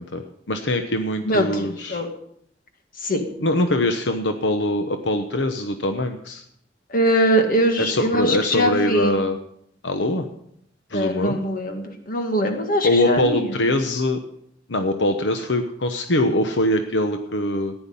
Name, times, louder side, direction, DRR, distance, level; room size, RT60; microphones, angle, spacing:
voice 1, 0.0-2.0 3.4-6.4 7.8-9.4 9.8-10.2 10.9-11.4 12.8-14.2 14.7-17.7, left 1 dB, 85° left, 7 dB, 1.0 m, -23 dB
voice 2, 1.3-2.1 3.1-3.2 6.9-9.1 10.9-13.4, equal, 50° left, 5 dB, 1.9 m, -22 dB
14.0 x 10.0 x 5.5 m, 0.70 s
head